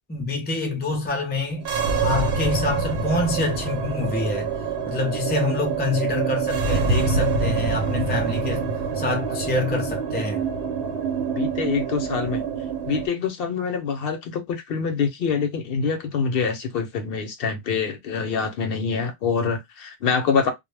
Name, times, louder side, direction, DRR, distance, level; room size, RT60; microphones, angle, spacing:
voice 1, 0.1-1.7 2.0-4.5 4.9-8.7 8.9-10.5, left 2 dB, 15° left, 0.4 m, -26 dB
sound 1, 1.6-13.1, right 5 dB, 75° right, 0.9 m, -25 dB
voice 2, 11.4-12.4 12.9-20.5, left 5 dB, 65° left, 0.7 m, -25 dB
2.1 x 2.0 x 3.2 m
omnidirectional pair, 1.1 m